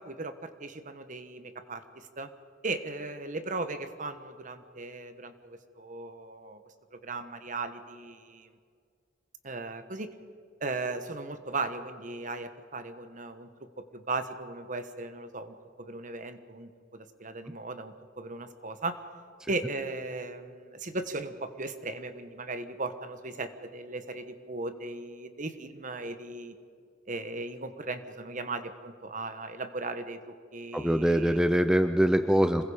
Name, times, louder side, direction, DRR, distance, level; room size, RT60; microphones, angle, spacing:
voice 1, 0.0-2.3 2.6-6.6 6.9-8.5 9.4-10.1 10.6-13.5 13.8-19.0 19.5-26.5 27.1-31.4, right 3 dB, 45° right, 10 dB, 1.3 m, -37 dB
voice 2, 30.7-32.6, equal, 5° right, 8 dB, 0.6 m, -23 dB
26.5 x 21.0 x 5.1 m, 2.2 s
head